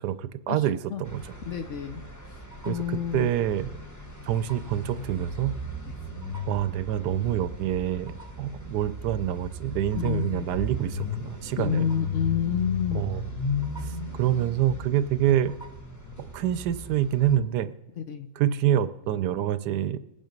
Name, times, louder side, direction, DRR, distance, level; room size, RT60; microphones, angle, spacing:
voice 1, 0.0-1.3 2.7-3.7 4.3-5.5 6.5-11.9 12.9-13.3 13.8-15.5 16.2-17.7 18.4-20.0, right 11 dB, 70° right, 14 dB, 1.2 m, -26 dB
sound 1, 1.0-17.4, left 3 dB, 10° left, 1.0 m, -36 dB
voice 2, 1.5-2.0 2.3-2.4 2.7-3.3 5.9-6.0 9.9-10.5 11.6-13.0 18.0-18.3, left 8 dB, 70° left, 9 dB, 0.7 m, -29 dB
20.0 x 8.9 x 5.3 m, 0.91 s
omnidirectional pair, 2.0 m